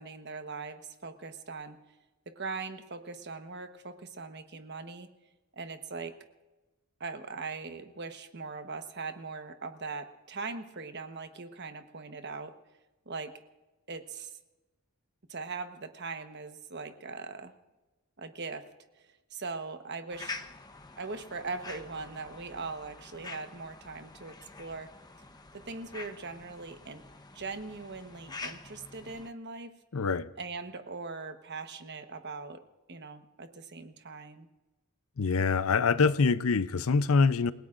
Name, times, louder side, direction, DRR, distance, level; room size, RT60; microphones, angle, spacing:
voice 1, 0.0-1.8 2.3-5.1 5.6-6.1 7.0-12.5 13.1-13.3 13.9-14.4 15.3-17.5 18.2-18.6 19.3-20.3 21.0-24.9 25.5-27.0 27.3-29.7 30.4-32.6 32.9-34.5, right 4 dB, 50° right, 1.2 m, -40 dB
sound 1, 20.1-29.3, left 3 dB, 20° left, 0.8 m, -46 dB
voice 2, 29.9-30.3 35.2-37.5, left 4 dB, 75° left, 0.6 m, -25 dB
29.0 x 17.5 x 2.5 m
head